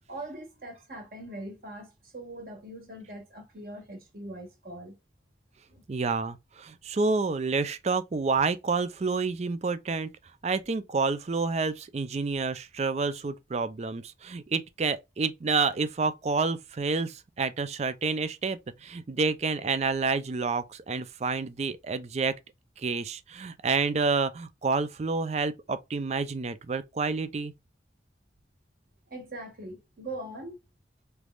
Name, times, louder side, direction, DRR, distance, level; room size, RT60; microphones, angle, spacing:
voice 1, 0.1-5.0 5.7-5.8 29.1-30.6, right 1 dB, 55° right, 1.4 m, -41 dB
voice 2, 5.9-10.1 10.4-22.4 22.8-27.5, right 4 dB, 40° right, 0.4 m, -29 dB
3.4 x 3.1 x 2.3 m
head